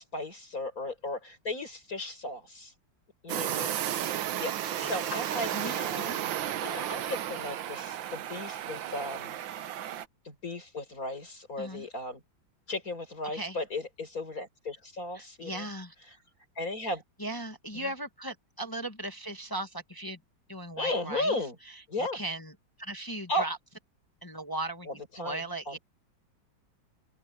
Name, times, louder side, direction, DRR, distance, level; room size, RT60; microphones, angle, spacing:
voice 1, 0.0-2.7 3.2-3.8 4.4-9.4 10.2-12.2 12.7-15.7 16.6-17.0 17.7-17.9 20.8-21.6 21.9-22.2 23.3-23.5 24.9-25.8, left 1 dB, 45° left, 6.2 m, -35 dB
sound 1, 3.3-10.1, right 11 dB, 75° right, 1.6 m, -33 dB
voice 2, 4.6-5.2 5.5-6.2 11.6-11.8 13.3-13.6 15.1-15.9 17.2-20.2 20.5-21.4 21.6-22.5 22.8-23.6 24.2-25.8, right 1 dB, 15° left, 0.8 m, -38 dB
open air
omnidirectional pair, 2.1 m